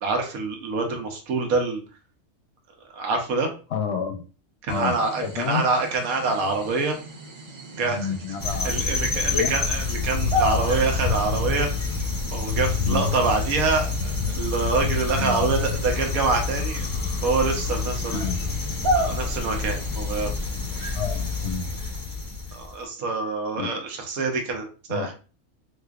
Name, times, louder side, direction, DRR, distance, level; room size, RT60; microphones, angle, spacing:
voice 1, 0.0-1.8 2.9-3.5 4.6-6.9 7.8-8.0 8.6-11.7 12.3-16.9 17.2-18.2 18.9-20.3 22.5-25.1, right 3 dB, 85° right, 3 dB, 1.3 m, -26 dB
voice 2, 3.7-4.2 4.7-5.6 7.8-9.5 12.8-13.1 15.1-15.4 18.1-18.5 20.9-21.7 23.6-23.8 24.9-25.1, left 6 dB, 60° left, 5 dB, 0.8 m, -30 dB
sound 1, 4.7-20.3, right 1 dB, 35° right, 0.4 m, -34 dB
sound 2, 8.4-22.7, left 4 dB, 30° left, 0.3 m, -27 dB
4.1 x 2.5 x 2.3 m, 0.35 s
omnidirectional pair, 1.4 m